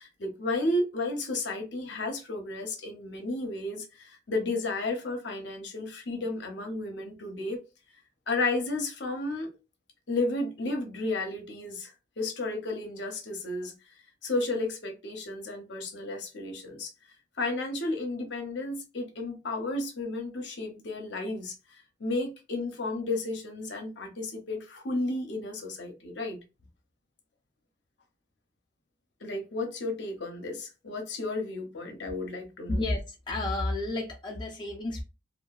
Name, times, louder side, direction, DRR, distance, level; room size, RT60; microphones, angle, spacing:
voice 1, 0.0-7.6 8.3-9.5 10.1-13.7 14.2-16.9 17.4-21.5 22.0-26.4 29.2-32.8, left 2 dB, 65° left, 0.7 m, -33 dB
voice 2, 32.7-35.0, left 2 dB, 25° left, 0.5 m, -31 dB
2.8 x 2.2 x 2.3 m
head